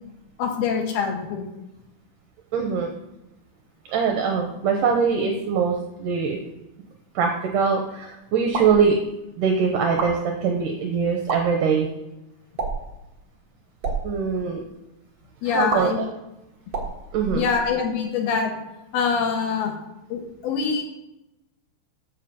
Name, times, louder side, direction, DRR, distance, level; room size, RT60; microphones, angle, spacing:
voice 1, 0.4-1.5 15.4-16.0 17.3-18.5 18.9-19.7 20.1-20.8, left 6 dB, 85° left, 1 dB, 3.4 m, -24 dB
voice 2, 2.5-2.9 3.9-6.4 7.2-9.0 9.4-11.9 14.0-14.6 15.4-16.1 17.1-17.5, right 6 dB, 70° right, 2 dB, 2.3 m, -22 dB
sound 1, 8.5-8.8 9.8-10.1 11.1-11.4 12.5-12.9 13.7-14.0 15.7-15.8 16.7-17.8, right 4 dB, 40° right, 1.6 m, -29 dB
7.4 x 7.1 x 7.0 m, 0.94 s
omnidirectional pair, 4.3 m